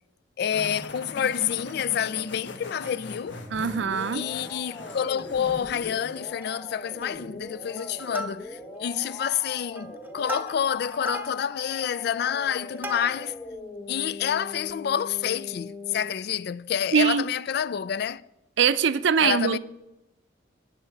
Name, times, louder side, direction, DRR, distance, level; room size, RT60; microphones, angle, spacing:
voice 1, 0.4-3.4 4.1-13.4 13.9-18.2 19.2-19.6, left 8 dB, 55° left, 0.3 m, -28 dB
sound 1, 0.5-6.3, left 2 dB, 75° left, 1.4 m, -42 dB
Plucked string instrument, 2.6-3.4 3.8-3.9 4.2-4.4 4.9-5.5 5.8-5.9 6.3-6.7 7.0-7.4 7.8-8.8 9.3-13.4 14.0-14.1, equal, 10° right, 0.7 m, -39 dB
sound 2, 3.3-16.1, left 2 dB, 20° left, 1.0 m, -41 dB
voice 2, 3.5-4.2 16.9-17.2 18.6-19.6, right 7 dB, 70° right, 0.5 m, -22 dB
18.5 x 6.6 x 4.6 m
head